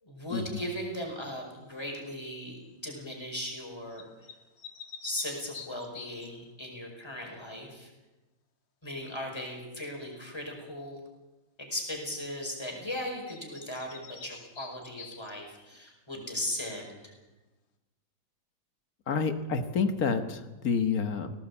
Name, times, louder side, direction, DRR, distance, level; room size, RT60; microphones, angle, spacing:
voice 1, 0.0-4.1 5.0-7.9 8.8-11.0 11.6-17.1, left 1 dB, 10° left, 1 dB, 5.2 m, -38 dB
sound 1, 1.8-2.1 3.9-6.5 12.9-13.0 13.3-15.7, left 7 dB, 70° left, 2.2 m, -47 dB
voice 2, 19.1-21.3, left 5 dB, 50° left, 8 dB, 1.7 m, -28 dB
19.0 x 17.5 x 8.4 m, 1.1 s
omnidirectional pair, 2.1 m